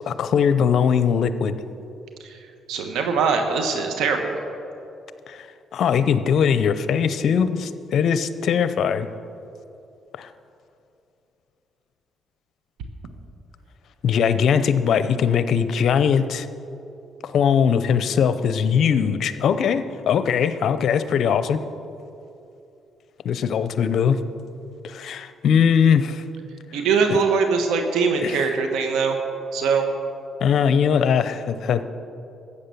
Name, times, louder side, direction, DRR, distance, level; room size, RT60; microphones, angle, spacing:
voice 1, 0.0-1.6 5.3-5.5 5.7-9.1 10.2-10.3 14.0-16.5 17.2-21.6 23.2-24.2 24.8-26.2 27.1-27.2 28.2-28.4 30.4-31.9, left 7 dB, 65° left, 12 dB, 0.7 m, -20 dB
voice 2, 2.7-4.3 26.7-29.2 29.5-29.8, right 5 dB, 85° right, 4 dB, 1.2 m, -22 dB
14.0 x 8.4 x 6.9 m, 2.8 s
cardioid pair, 90°, 0 cm